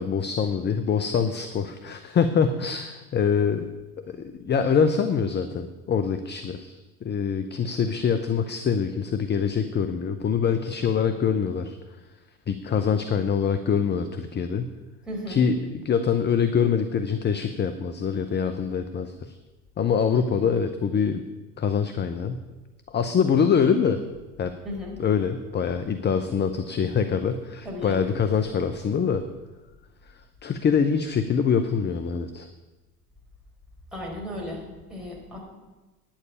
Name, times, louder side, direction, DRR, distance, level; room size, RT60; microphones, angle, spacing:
voice 1, 0.0-3.7 4.1-11.8 12.5-14.7 15.3-19.4 19.8-21.2 21.6-22.4 22.9-24.0 24.4-24.5 25.0-29.2 30.1-32.5, left 6 dB, 25° left, 9 dB, 0.7 m, -24 dB
voice 2, 15.0-15.4 24.6-24.9 27.6-28.0 33.9-35.4, left 1 dB, ahead, -4 dB, 4.9 m, -35 dB
9.7 x 7.3 x 8.7 m, 1.2 s
hypercardioid pair, 75°, 45 cm